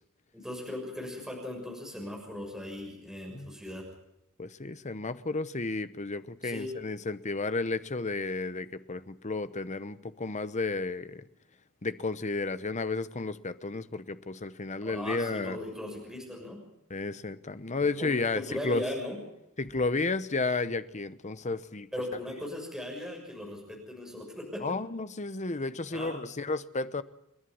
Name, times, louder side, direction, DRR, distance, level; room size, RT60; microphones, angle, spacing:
voice 1, 0.3-3.8 6.4-6.7 14.8-16.6 17.8-19.2 21.9-24.6 25.9-26.2, left 1 dB, 5° right, 6.6 m, -38 dB
voice 2, 4.4-11.2 11.8-15.6 16.9-18.8 19.6-21.9 24.6-27.0, left 3 dB, 35° left, 0.9 m, -32 dB
30.0 x 11.0 x 9.5 m
head